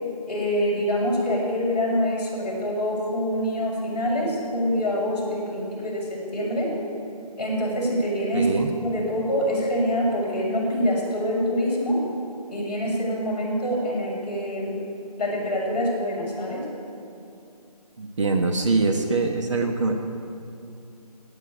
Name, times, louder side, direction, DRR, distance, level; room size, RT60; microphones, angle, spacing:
voice 1, 0.3-6.7 7.4-8.5 8.8-12.0 12.5-14.8 15.2-16.6, equal, 15° left, -9 dB, 5.0 m, -25 dB
voice 2, 8.3-8.7 18.0-19.9, right 3 dB, 50° right, 3 dB, 1.3 m, -23 dB
17.5 x 9.0 x 8.5 m, 2.6 s
figure-of-eight pair, 165°, 21 cm